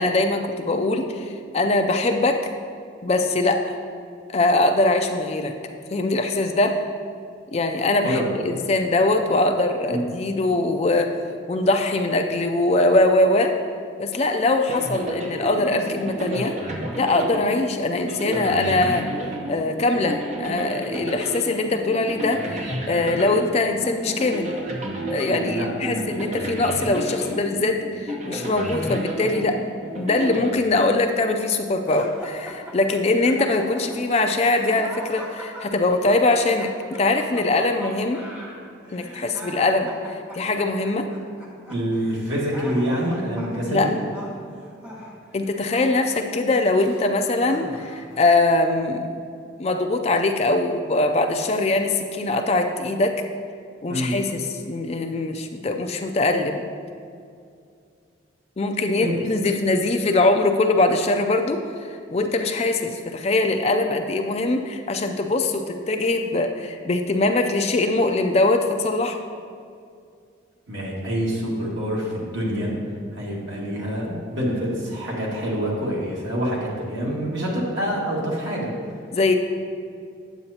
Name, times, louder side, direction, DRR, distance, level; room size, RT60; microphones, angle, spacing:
voice 1, 0.0-2.4 3.0-3.7 4.3-5.5 5.9-6.9 7.5-11.1 11.5-13.6 14.0-16.5 17.0-19.1 19.5-24.6 25.1-29.6 30.0-36.7 37.0-38.2 38.9-41.1 43.7-43.9 45.3-49.2 49.6-53.1 53.8-56.5 58.6-61.6 61.9-69.2 79.1-79.3, left 2 dB, 30° left, 5 dB, 0.4 m, -22 dB
sound 1, 14.7-31.3, right 1 dB, 35° right, 0.8 m, -31 dB
voice 2, 25.3-26.0 41.7-43.9 53.9-54.1 59.0-59.2 70.7-72.7 73.2-78.7, equal, 70° right, -5 dB, 1.9 m, -26 dB
sound 2, 31.9-47.0 47.5-48.2, equal, 5° right, 1.2 m, -40 dB
9.1 x 7.7 x 2.8 m, 2.3 s
head